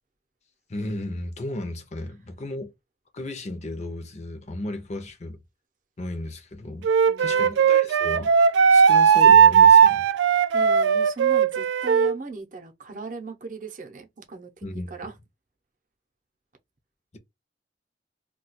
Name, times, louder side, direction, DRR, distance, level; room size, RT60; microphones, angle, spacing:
voice 1, 0.7-2.7 3.1-5.4 6.0-6.9 7.2-8.3 8.7-10.1 14.6-14.9, left 1 dB, 40° left, 0.5 m, -34 dB
Wind instrument woodwind instrument, 6.8-12.1, right 7 dB, 80° right, 0.3 m, -17 dB
voice 2, 7.1-7.7 10.5-15.1, right 4 dB, 45° right, 0.7 m, -39 dB
2.3 x 2.3 x 3.9 m
head